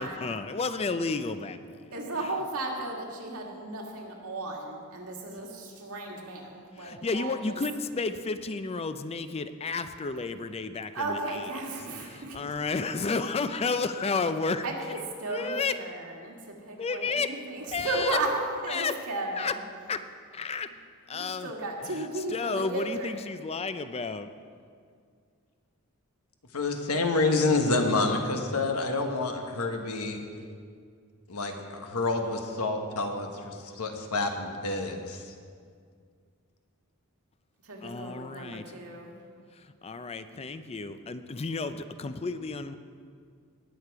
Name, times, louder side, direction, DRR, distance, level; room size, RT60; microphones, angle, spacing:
voice 1, 0.0-1.9 6.8-11.2 12.0-14.7 15.3-15.8 16.8-17.3 17.7-18.2 18.7-18.9 19.4-19.5 19.9-20.0 20.3-20.7 21.1-21.5 21.9-24.3 37.8-38.6 39.5-42.8, left 4 dB, 30° left, 11 dB, 0.4 m, -32 dB
voice 2, 1.9-7.6 10.9-12.4 14.6-14.8 15.2-18.3 18.6-19.6 21.1-23.2 37.6-39.3, right 2 dB, 80° right, 0 dB, 1.9 m, -35 dB
voice 3, 26.5-30.2 31.3-35.3, left 3 dB, 90° left, 4 dB, 1.2 m, -28 dB
18.5 x 6.7 x 4.7 m, 2.1 s
head